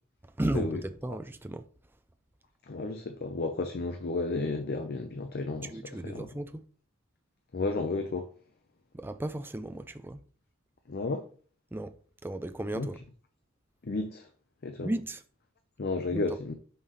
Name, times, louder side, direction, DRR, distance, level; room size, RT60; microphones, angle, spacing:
voice 1, 0.4-1.6 5.7-6.7 8.9-10.2 11.7-11.9 12.2-13.0 14.8-15.2 16.1-16.2, right 1 dB, 10° right, 0.4 m, -34 dB
voice 2, 2.7-6.3 7.5-8.3 10.9-11.3 12.7-12.9 13.8-14.3 14.6-14.9 15.8-16.5, left 3 dB, 45° left, 0.5 m, -32 dB
5.6 x 3.2 x 5.5 m
head